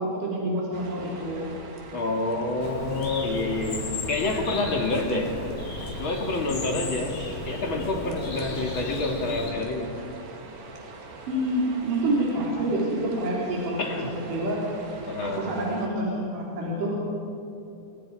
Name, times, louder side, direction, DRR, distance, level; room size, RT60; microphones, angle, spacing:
voice 1, 0.0-1.5 4.9-5.1 11.3-13.9 14.2-14.6 15.2-16.9, right 1 dB, 65° right, -5 dB, 5.2 m, -27 dB
sound 1, 0.7-15.9, right 3 dB, 80° right, 4.2 m, -43 dB
voice 2, 1.9-5.4 6.0-9.9 13.8-14.1 15.1-15.4, left 2 dB, 35° left, 1 dB, 2.9 m, -28 dB
Bird, 2.6-9.5, left 2 dB, 85° left, 6.0 m, -35 dB
30.0 x 26.0 x 5.0 m, 2.8 s
omnidirectional pair, 4.1 m